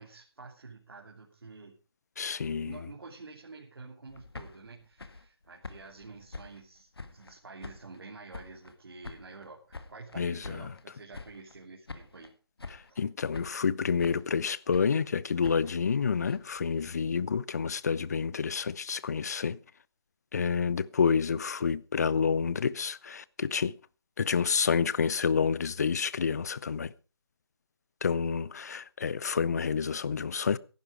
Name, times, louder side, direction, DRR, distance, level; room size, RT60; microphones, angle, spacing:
voice 1, 0.0-1.7 2.5-12.3 12.9-13.0, right 3 dB, 65° right, 3.1 m, -49 dB
voice 2, 2.2-2.8 10.2-10.7 12.7-19.6 20.3-23.8 24.2-26.9 28.0-30.6, left 6 dB, 40° left, 0.6 m, -29 dB
sound 1, 4.1-7.3 7.6-8.8 9.0-10.8 11.1-11.6 11.9-12.3 12.6-13.0 13.3-14.4 14.7-16.9, left 3 dB, 70° left, 1.9 m, -46 dB
14.5 x 11.5 x 4.9 m
figure-of-eight pair, 155°, 13 cm